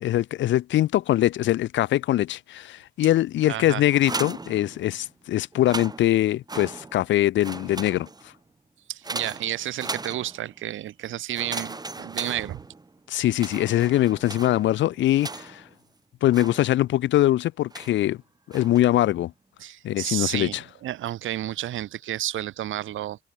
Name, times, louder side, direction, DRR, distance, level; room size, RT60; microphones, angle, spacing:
voice 1, 0.0-8.1 13.1-15.6 16.2-18.2 18.5-19.3 19.8-20.6, left 14 dB, 70° left, 0.6 m, -22 dB
voice 2, 3.5-3.8 8.9-12.6 19.6-23.2, right 13 dB, 80° right, 6.8 m, -31 dB
sound 1, 3.9-5.1 5.5-7.1 7.4-8.4 9.0-10.6 11.3-13.0 13.3-15.7 16.3-17.0 17.7-18.1 18.5-19.0, right 3 dB, 20° right, 2.9 m, -37 dB
cardioid pair, 90°, 20 cm